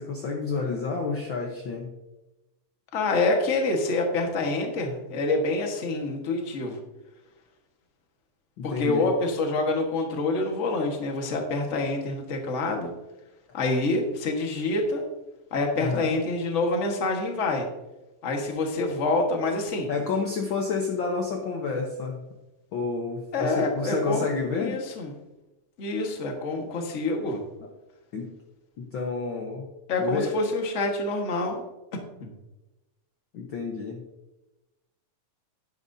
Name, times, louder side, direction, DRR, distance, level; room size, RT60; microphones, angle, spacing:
voice 1, 0.0-1.9 8.6-9.1 15.7-16.1 19.9-22.2 22.7-24.8 28.1-28.3 28.8-29.7 30.0-30.4 33.3-34.1, left 4 dB, 75° left, 2 dB, 1.1 m, -30 dB
voice 2, 2.9-6.8 8.6-12.9 13.5-15.0 15.5-17.7 18.2-19.9 23.3-24.3 24.5-25.1 25.8-27.4 29.9-31.6 32.2-32.3, left 2 dB, 45° left, 2 dB, 1.0 m, -26 dB
12.0 x 10.5 x 2.7 m, 1.0 s
omnidirectional pair, 3.6 m